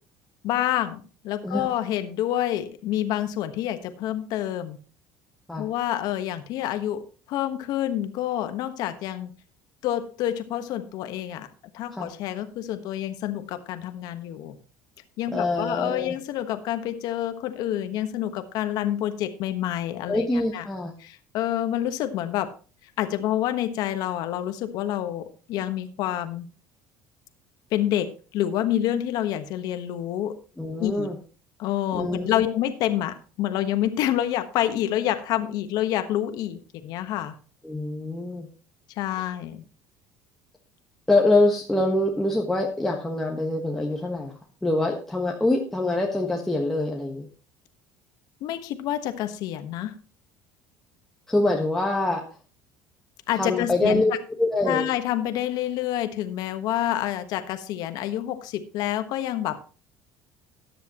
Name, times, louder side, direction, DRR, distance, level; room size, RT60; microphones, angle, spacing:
voice 1, 0.4-4.8 5.6-7.0 7.3-9.3 9.8-11.5 11.7-14.6 15.2-20.7 21.0-22.5 23.0-26.5 27.7-30.4 30.8-31.1 31.6-37.3 39.0-39.6 48.4-49.9 53.3-54.0 54.7-59.6, left 12 dB, 60° left, 9 dB, 1.3 m, -28 dB
voice 2, 15.3-16.2 20.1-20.9 30.6-31.2 31.9-32.4 37.6-38.5 41.1-44.3 44.6-47.3 51.3-52.2 53.4-54.1 54.4-54.8, left 2 dB, 5° left, -1 dB, 1.3 m, -24 dB
13.5 x 10.0 x 3.0 m, 0.37 s
cardioid pair, 155°, 8 cm